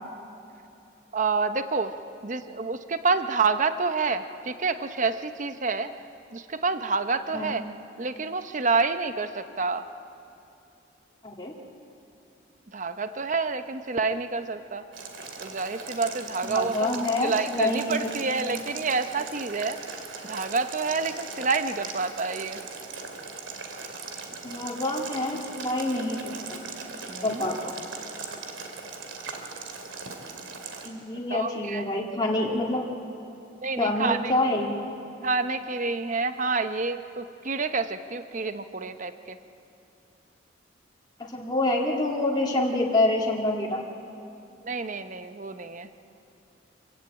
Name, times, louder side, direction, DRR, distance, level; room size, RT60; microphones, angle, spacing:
voice 1, 1.1-1.9 2.2-5.9 6.3-7.6 8.0-9.9 12.7-14.8 15.4-19.8 20.2-22.6 27.1-27.5 31.3-32.0 33.6-34.3 35.2-39.4 44.6-45.9, right 4 dB, 40° right, 10 dB, 0.8 m, -28 dB
voice 2, 11.2-11.5 16.4-18.1 18.5-18.6 24.4-26.6 27.2-27.8 30.8-32.8 33.8-34.8 41.2-43.8, left 2 dB, 20° left, -2 dB, 2.0 m, -27 dB
Boiling, 14.9-30.9, right 4 dB, 75° right, 2.5 m, -39 dB
26.0 x 15.5 x 9.0 m, 2.7 s
head